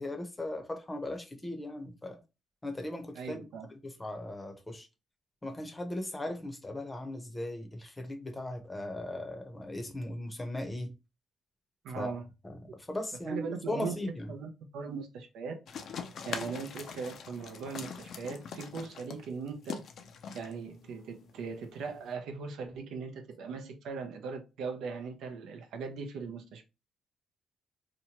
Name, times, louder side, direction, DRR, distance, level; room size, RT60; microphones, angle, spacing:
voice 1, 0.0-2.2 2.6-4.9 5.4-10.9 12.0-12.1 12.4-12.6 12.9-14.3, left 1 dB, 15° left, 0.7 m, -38 dB
voice 2, 3.2-3.7 11.8-12.2 13.3-15.6 16.3-19.8 20.3-26.6, right 5 dB, 80° right, 0.5 m, -39 dB
sound 1, 15.7-22.1, left 6 dB, 65° left, 0.4 m, -43 dB
2.8 x 2.2 x 2.8 m
cardioid pair, 90°, 0 cm